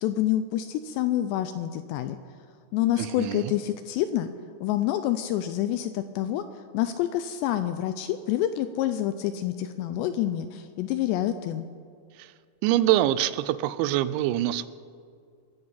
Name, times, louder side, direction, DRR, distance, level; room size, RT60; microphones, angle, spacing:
voice 1, 0.0-2.2 2.7-4.3 4.6-6.4 6.7-11.7, left 12 dB, 85° left, 10 dB, 2.5 m, -27 dB
voice 2, 3.0-3.5 12.2-12.3 12.6-14.7, right 13 dB, 85° right, 15 dB, 2.9 m, -25 dB
22.5 x 7.9 x 5.6 m, 2.2 s
omnidirectional pair, 5.3 m